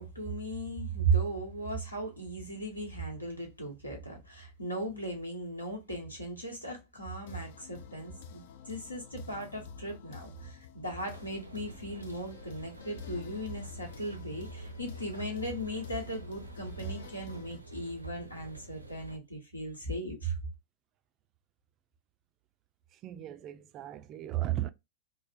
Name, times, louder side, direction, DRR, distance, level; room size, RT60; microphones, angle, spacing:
voice 1, 0.0-20.4, right 2 dB, 85° left, 1.1 m, -36 dB
sound 1, 7.3-17.6, left 5 dB, 55° left, 0.4 m, -48 dB
sound 2, 10.9-19.2, right 3 dB, 85° right, 0.5 m, -50 dB
voice 2, 23.0-24.7, right 14 dB, 35° right, 0.3 m, -35 dB
3.2 x 2.0 x 2.4 m
figure-of-eight pair, 90°, 0 cm